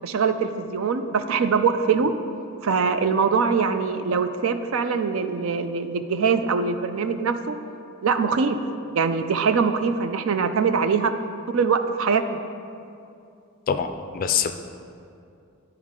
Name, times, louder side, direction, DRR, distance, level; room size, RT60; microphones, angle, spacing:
voice 1, 0.0-2.1 2.6-7.6 8.0-8.6 8.9-11.1 11.5-12.4, right 5 dB, 75° right, 9 dB, 0.4 m, -23 dB
voice 2, 13.7-14.5, left 7 dB, 40° left, 8 dB, 0.4 m, -24 dB
11.0 x 4.5 x 3.7 m, 2.5 s
head